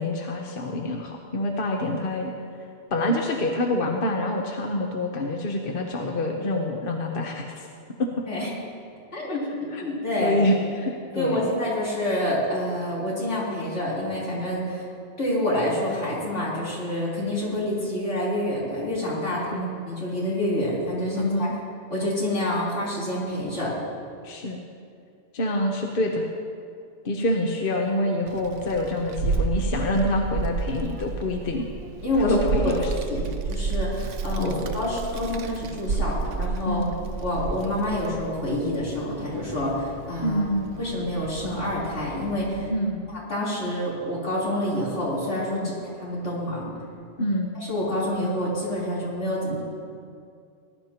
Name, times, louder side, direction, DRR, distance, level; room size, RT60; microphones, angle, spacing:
voice 1, 0.0-2.3 2.9-7.7 8.0-8.1 9.3-9.4 9.7-9.8 10.2-11.5 19.5-19.6 21.1-21.5 24.2-24.6 25.3-26.3 27.0-31.7 32.2-33.3 34.4-34.6 36.6-36.9 40.2-40.7 42.7-43.0 45.5-45.7 47.2-47.5, left 1 dB, 50° left, 1 dB, 1.0 m, -26 dB
voice 2, 9.1-10.4 11.1-14.9 15.2-21.5 21.9-23.7 32.0-36.8 37.2-40.4 40.8-42.7 43.3-46.7 47.7-49.6, left 1 dB, 75° left, -8 dB, 4.1 m, -27 dB
Child speech kid speaking, 28.3-42.7, right 4 dB, 80° right, 1.1 m, -31 dB
19.5 x 11.5 x 2.9 m, 2.4 s
omnidirectional pair, 1.2 m